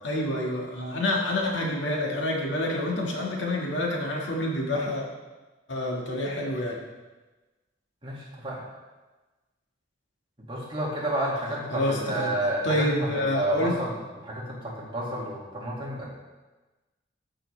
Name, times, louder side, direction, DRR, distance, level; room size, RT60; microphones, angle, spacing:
voice 1, 0.0-5.0 5.7-6.8 11.7-12.4 12.6-13.8, left 1 dB, 75° left, -1 dB, 1.7 m, -27 dB
voice 2, 8.0-8.6 10.4-14.0 14.2-16.1, right 1 dB, 30° right, -5 dB, 2.1 m, -31 dB
13.0 x 5.6 x 3.3 m, 1.2 s
head